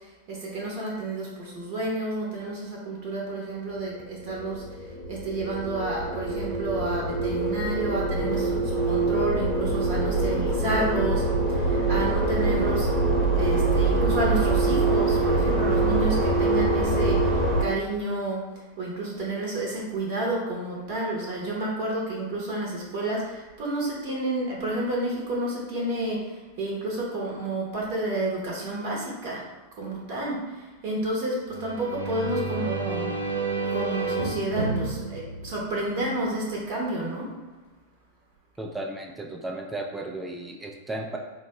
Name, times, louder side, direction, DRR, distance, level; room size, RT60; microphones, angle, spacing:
voice 1, 0.3-4.6 5.1-11.2 11.5-18.4 18.8-26.2 26.6-29.4 29.8-30.5 30.8-33.1 33.7-37.3, right 2 dB, 45° right, -3 dB, 0.8 m, -30 dB
sound 1, 4.0-17.6, right 2 dB, 10° left, 0.9 m, -24 dB
sound 2, 31.5-36.2, right 3 dB, 80° right, 0.4 m, -30 dB
voice 2, 38.6-41.2, right 2 dB, 10° right, 0 dB, 0.4 m, -34 dB
4.0 x 2.1 x 3.0 m, 1.2 s
figure-of-eight pair, 90°, 0 cm